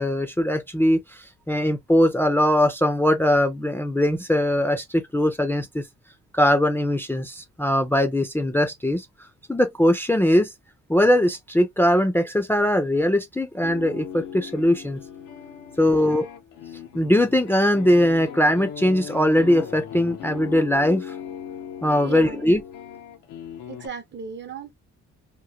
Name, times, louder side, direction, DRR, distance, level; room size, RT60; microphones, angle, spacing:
voice 1, 0.0-5.8 6.3-9.0 9.5-10.5 10.9-15.0 15.8-16.3 16.9-21.1 21.8-22.6, left 1 dB, 5° left, 0.5 m, -21 dB
sound 1, 13.4-23.9, left 8 dB, 80° left, 0.7 m, -38 dB
voice 2, 22.0-22.4 23.7-24.7, right 5 dB, 35° right, 0.7 m, -36 dB
3.0 x 2.1 x 2.2 m
cardioid pair, 90°, 30 cm